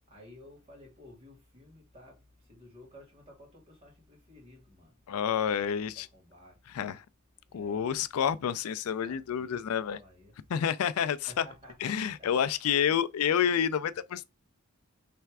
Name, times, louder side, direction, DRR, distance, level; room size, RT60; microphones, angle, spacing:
voice 1, 0.1-2.2 2.5-4.9 5.4-6.6 7.5-7.9 9.0-9.6 9.9-10.3 11.3-12.3, left 1 dB, 30° right, 2.3 m, -53 dB
voice 2, 5.1-6.1 6.7-7.0 7.5-10.0 10.5-11.5 11.8-14.2, left 8 dB, 85° left, 0.4 m, -29 dB
3.4 x 3.3 x 4.6 m
head